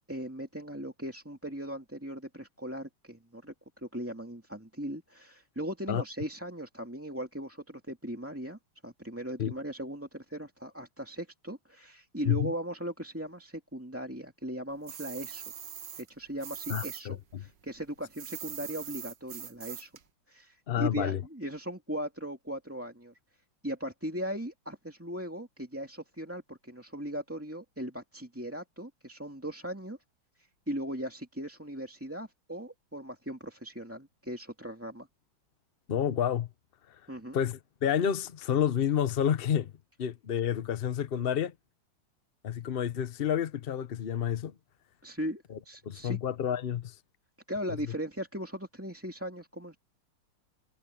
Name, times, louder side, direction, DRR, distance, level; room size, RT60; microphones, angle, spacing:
voice 1, 0.0-15.4 16.0-19.9 20.3-23.1 23.6-30.0 30.4-35.1 37.1-37.4 45.0-46.2 47.5-49.8, equal, 5° right, 2.2 m, -38 dB
sound 1, 14.9-17.0 17.3-20.0, right 9 dB, 60° right, 1.7 m, -42 dB
voice 2, 16.7-17.4 20.7-21.2 35.9-36.5 37.3-39.7 40.0-41.5 42.4-44.5 45.5-45.6 45.9-46.9, left 9 dB, 85° left, 0.5 m, -29 dB
omnidirectional pair, 2.3 m